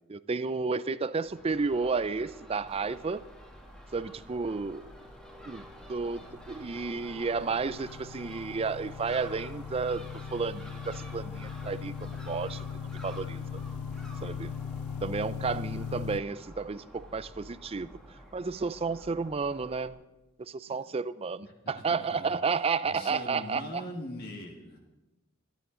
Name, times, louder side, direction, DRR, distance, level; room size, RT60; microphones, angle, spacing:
voice 1, 0.1-3.2 3.9-4.9 5.5-12.6 13.0-13.6 14.2-14.5 15.0-18.0 18.3-20.0 20.4-23.8, right 4 dB, 25° right, 16 dB, 0.4 m, -32 dB
Crow / Gull seagull, 1.2-19.9, equal, 5° left, 1.5 m, -49 dB
sound 1, 5.3-16.2, left 7 dB, 75° left, 0.4 m, -40 dB
voice 2, 21.6-22.4 22.8-24.8, left 1 dB, 45° left, 1 dB, 1.6 m, -42 dB
25.0 x 10.5 x 3.8 m, 1.1 s
head